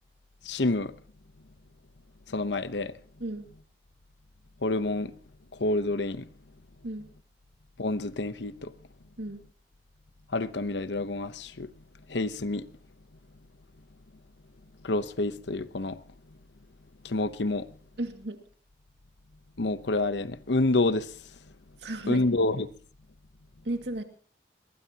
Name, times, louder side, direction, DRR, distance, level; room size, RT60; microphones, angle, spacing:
voice 1, 0.4-0.9 2.3-3.0 4.6-5.1 5.5-6.3 7.8-8.7 10.3-11.7 12.1-12.7 14.8-16.0 17.0-17.7 19.6-21.1 22.1-22.7, left 2 dB, 75° left, 0.9 m, -28 dB
voice 2, 18.0-18.4 21.8-22.3 23.7-24.0, right 1 dB, 70° right, 2.2 m, -34 dB
22.0 x 19.5 x 2.9 m
head